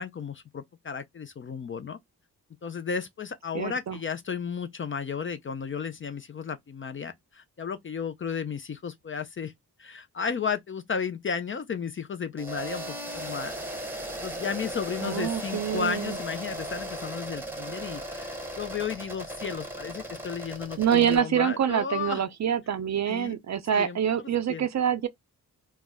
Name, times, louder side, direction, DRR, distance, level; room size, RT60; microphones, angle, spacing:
voice 1, 0.0-2.0 2.6-9.5 9.8-13.5 13.9-22.2 23.1-23.4 23.7-24.0 24.5-24.7, left 6 dB, 35° left, 0.4 m, -34 dB
voice 2, 3.5-4.0 15.0-16.2 20.8-25.1, right 9 dB, 45° right, 0.5 m, -26 dB
sound 1, 12.4-21.2, right 1 dB, 5° right, 0.8 m, -37 dB
2.3 x 2.0 x 3.3 m
supercardioid pair, 45°, 39 cm